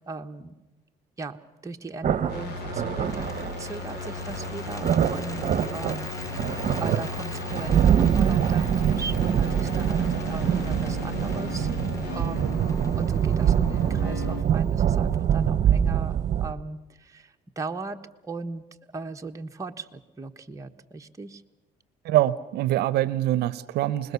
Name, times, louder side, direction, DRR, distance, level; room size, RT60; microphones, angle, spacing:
voice 1, 0.1-0.5 1.2-1.4 1.6-5.4 5.7-11.7 12.1-18.6 18.9-21.4, right 3 dB, 20° right, 3 dB, 1.3 m, -38 dB
sound 1, 2.0-16.5, right 9 dB, 45° right, 1.1 m, -25 dB
sound 2, 2.3-14.4, left 5 dB, 85° left, 3.1 m, -36 dB
Bird, 3.0-15.2, left 2 dB, 20° left, 1.3 m, -44 dB
voice 2, 22.0-24.1, right 14 dB, 75° right, 17 dB, 0.7 m, -24 dB
26.0 x 20.5 x 7.0 m, 1.0 s
cardioid pair, 110°, 17 cm